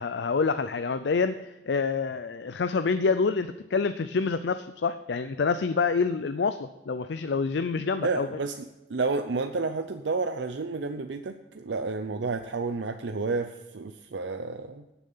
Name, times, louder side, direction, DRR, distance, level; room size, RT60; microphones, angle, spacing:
voice 1, 0.0-8.3, left 4 dB, 75° left, 11 dB, 0.5 m, -27 dB
voice 2, 8.0-8.6 8.9-14.8, right 4 dB, 80° right, 7 dB, 0.6 m, -30 dB
17.5 x 7.1 x 5.5 m, 1.0 s
head